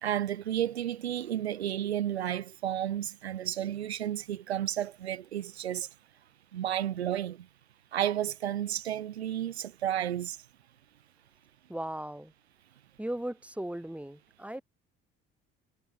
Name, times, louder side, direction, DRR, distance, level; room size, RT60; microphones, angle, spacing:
voice 1, 0.0-5.9 6.5-7.5 7.9-10.4, right 11 dB, 80° right, 1.7 m, -32 dB
voice 2, 11.7-12.3 13.0-14.6, right 1 dB, 5° right, 3.3 m, -37 dB
figure-of-eight pair, 50°, 32 cm